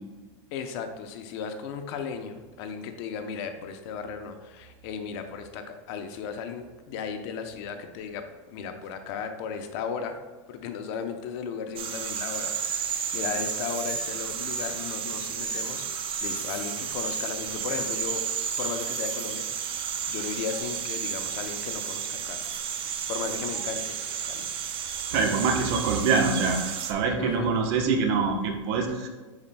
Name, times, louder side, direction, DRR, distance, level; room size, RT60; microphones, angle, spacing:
voice 1, 0.5-10.2 10.5-15.9 16.2-18.2 18.6-22.5 23.1-24.0 24.2-24.5 27.2-27.5, left 6 dB, 55° left, 7 dB, 0.8 m, -35 dB
sound 1, 11.8-26.9, right 7 dB, 35° right, 0.6 m, -32 dB
voice 2, 25.1-29.1, right 4 dB, 60° right, 4 dB, 1.0 m, -25 dB
9.5 x 4.4 x 2.3 m, 1.3 s
hypercardioid pair, 115°, 16 cm